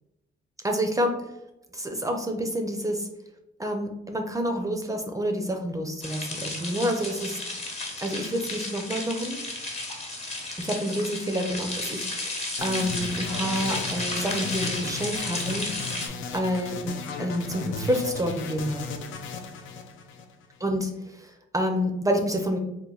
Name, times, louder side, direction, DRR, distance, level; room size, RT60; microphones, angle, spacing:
voice 1, 0.6-1.2 1.7-3.1 3.6-7.4 8.0-9.4 10.6-15.7 16.3-18.8 20.6-22.6, equal, 15° right, 3 dB, 0.4 m, -28 dB
sound 1, 6.0-16.1, left 2 dB, 35° left, 0.9 m, -33 dB
sound 2, 12.6-20.7, left 4 dB, 80° left, 0.5 m, -36 dB
3.0 x 2.2 x 3.7 m, 0.87 s
cardioid pair, 90°, 20 cm